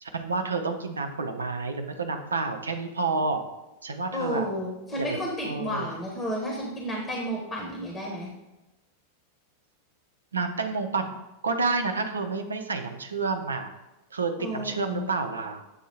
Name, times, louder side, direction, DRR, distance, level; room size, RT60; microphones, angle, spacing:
voice 1, 0.0-3.4 3.8-4.5 5.0-5.9 10.3-13.7 14.1-15.6, right 4 dB, 75° right, 6 dB, 0.6 m, -29 dB
voice 2, 4.1-8.3 14.4-15.1, equal, 20° left, -2 dB, 1.2 m, -32 dB
8.0 x 2.7 x 4.4 m, 1.0 s
figure-of-eight pair, 90°, 0 cm